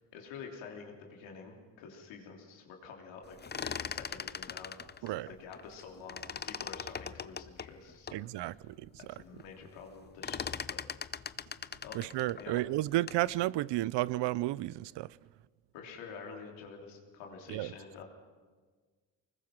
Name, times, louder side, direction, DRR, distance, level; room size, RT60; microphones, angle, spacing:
voice 1, 0.1-3.4 3.6-4.7 5.0-8.2 8.5-8.7 9.0-11.1 11.8-12.0 12.4-12.6 15.7-18.0, left 5 dB, 90° left, 3.2 m, -48 dB
sound 1, 3.3-5.8 6.1-8.2 8.7-8.8 9.1-9.5 9.8-13.3, left 6 dB, 25° left, 0.6 m, -40 dB
voice 2, 8.1-8.7 11.9-15.1 17.5-17.7, right 17 dB, 70° right, 0.6 m, -32 dB
24.0 x 20.5 x 6.0 m
supercardioid pair, 65°, 44 cm